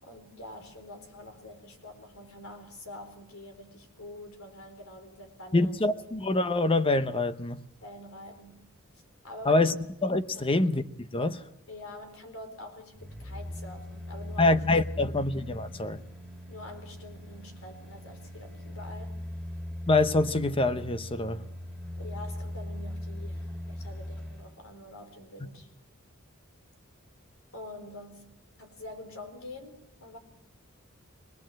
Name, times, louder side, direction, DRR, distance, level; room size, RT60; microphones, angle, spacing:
voice 1, 0.0-5.8 7.8-8.7 9.2-9.8 10.3-10.6 11.7-14.7 16.5-19.3 22.0-25.7 27.5-30.2, left 1 dB, 90° left, 4.1 m, -46 dB
voice 2, 5.5-7.6 9.5-9.7 10.0-10.8 11.1-11.4 14.4-16.0 19.9-21.4, left 2 dB, 25° left, 0.8 m, -25 dB
sound 1, 12.9-24.5 24.9-25.0, left 1 dB, 5° left, 2.9 m, -40 dB
25.0 x 19.5 x 7.7 m
head